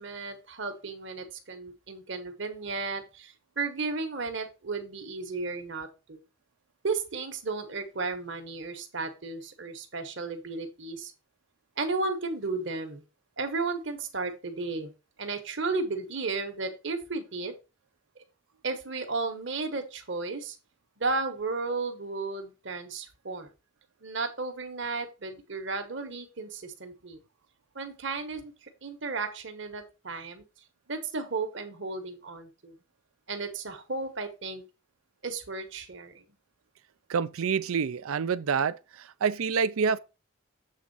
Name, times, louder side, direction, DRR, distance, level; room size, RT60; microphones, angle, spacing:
voice 1, 0.0-6.2 6.8-11.1 11.8-13.0 13.4-14.9 15.2-17.5 18.6-20.6 21.0-23.5 24.0-27.2 27.7-30.4 30.9-32.7 33.3-34.6 35.2-36.2, right 3 dB, 55° right, 1.3 m, -34 dB
voice 2, 37.1-38.8 39.2-40.0, right 6 dB, 80° right, 0.5 m, -27 dB
7.6 x 3.7 x 5.4 m
head